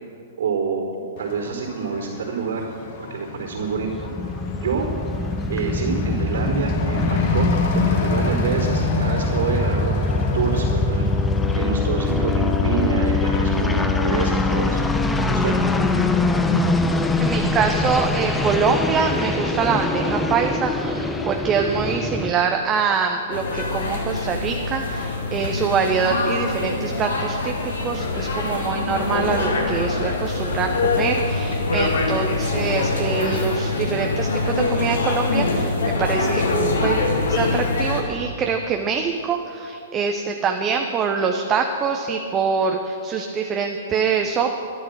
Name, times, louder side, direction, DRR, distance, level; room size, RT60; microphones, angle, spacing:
voice 1, 0.4-2.7 3.1-4.1 4.6-4.9 5.5-7.5 7.7-11.1 11.5-14.8 15.3-15.5, right 5 dB, 70° right, -11 dB, 3.8 m, -27 dB
Truck / Accelerating revving vroom, 1.2-15.6, left 3 dB, 50° left, 1.8 m, -30 dB
sound 1, 3.5-22.3, left 3 dB, 10° left, 0.8 m, -23 dB
voice 2, 17.2-35.7 36.0-44.5, right 5 dB, 25° right, 3 dB, 0.9 m, -24 dB
sound 2, 23.3-38.0, left 3 dB, 75° left, 2.4 m, -24 dB
12.5 x 11.5 x 6.5 m, 2.7 s
hypercardioid pair, 115°, 0 cm